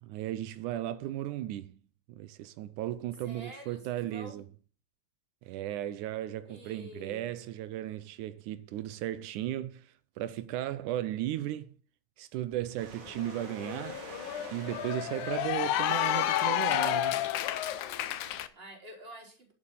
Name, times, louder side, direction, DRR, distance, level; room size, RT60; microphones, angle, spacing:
voice 1, 0.0-1.8 2.1-4.4 5.4-11.8 12.2-14.1 14.5-17.3, right 13 dB, 90° right, 2.3 m, -36 dB
voice 2, 3.2-4.5 6.5-7.3 16.0-16.3 18.1-19.5, equal, 20° right, 3.9 m, -49 dB
Cheering / Applause, 12.6-12.7 13.0-18.5, left 13 dB, 80° left, 2.3 m, -31 dB
sound 1, 12.8-18.4, right 5 dB, 70° right, 4.2 m, -49 dB
11.0 x 9.6 x 5.4 m
omnidirectional pair, 3.5 m